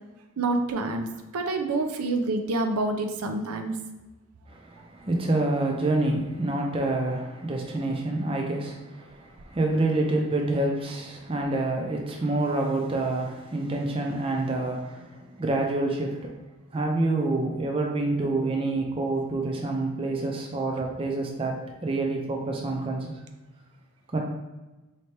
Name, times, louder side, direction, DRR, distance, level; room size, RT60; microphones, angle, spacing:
voice 1, 0.4-1.1 1.3-3.8, right 2 dB, 80° right, 6 dB, 0.5 m, -27 dB
voice 2, 4.5-16.3 16.7-21.5 21.8-23.2 24.1-24.2, right 2 dB, 25° right, 0 dB, 0.5 m, -27 dB
4.3 x 2.8 x 3.2 m, 1.1 s
head